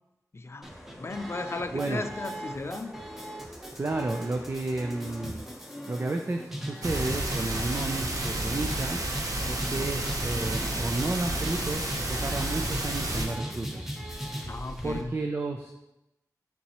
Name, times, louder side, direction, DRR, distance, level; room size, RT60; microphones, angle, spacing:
voice 1, 0.3-0.7 1.0-2.9 14.4-15.1, left 3 dB, 45° left, 8 dB, 0.5 m, -35 dB
sound 1, 0.6-15.0, equal, 5° right, 1.1 m, -38 dB
voice 2, 1.7-2.0 3.8-5.4 5.9-9.1 9.5-13.9 14.8-15.7, right 2 dB, 40° right, 4 dB, 0.5 m, -32 dB
sound 2, 6.8-13.3, right 1 dB, 65° right, 1.0 m, -31 dB
7.0 x 6.0 x 3.1 m, 0.93 s
wide cardioid pair, 70°, 6 cm